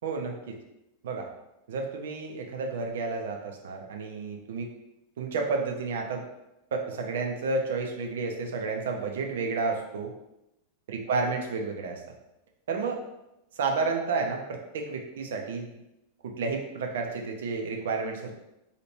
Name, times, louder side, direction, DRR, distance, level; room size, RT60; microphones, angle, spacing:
voice 1, 0.0-0.6 1.0-1.3 1.7-4.7 5.2-6.2 6.7-10.1 10.9-12.0 12.7-13.0 13.6-15.7 16.2-18.3, right 4 dB, 60° right, 2 dB, 0.5 m, -31 dB
2.8 x 2.4 x 3.2 m, 0.89 s
figure-of-eight pair, 90°, 0 cm